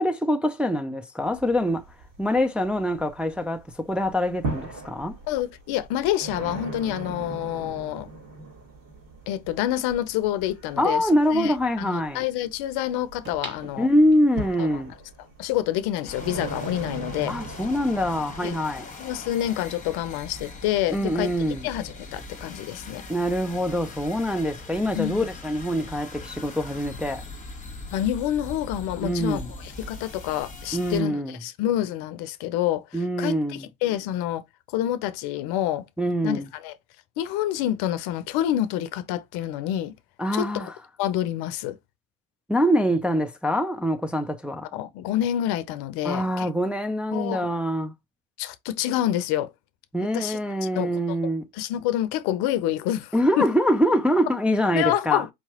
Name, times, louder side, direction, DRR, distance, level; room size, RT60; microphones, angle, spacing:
voice 1, 0.0-1.9 2.2-5.2 10.8-12.2 13.8-14.9 17.3-18.9 20.9-21.7 23.1-27.2 29.0-29.5 30.7-31.3 32.9-33.7 36.0-36.5 40.2-40.7 42.5-44.7 46.0-47.9 49.9-51.5 53.1-55.2, equal, 5° right, 0.4 m, -24 dB
sound 1, 1.2-3.4 3.7-18.7, right 3 dB, 70° right, 3.0 m, -39 dB
voice 2, 5.3-8.1 9.3-13.9 14.6-14.8 15.4-17.3 18.4-18.6 19.0-23.0 25.0-25.3 27.9-34.4 34.7-35.9 36.2-36.8 37.2-39.9 40.3-40.7 41.0-41.8 44.7-46.5 47.1-47.5 48.4-49.5 50.0-50.4 50.7-51.2 51.5-53.5 54.7-55.3, left 12 dB, 65° left, 0.7 m, -28 dB
sound 2, 13.2-14.6 15.1-15.2, right 2 dB, 25° right, 1.7 m, -41 dB
sound 3, 16.1-31.0, left 2 dB, 15° left, 1.5 m, -40 dB
4.6 x 2.9 x 2.8 m
hypercardioid pair, 80°, 43 cm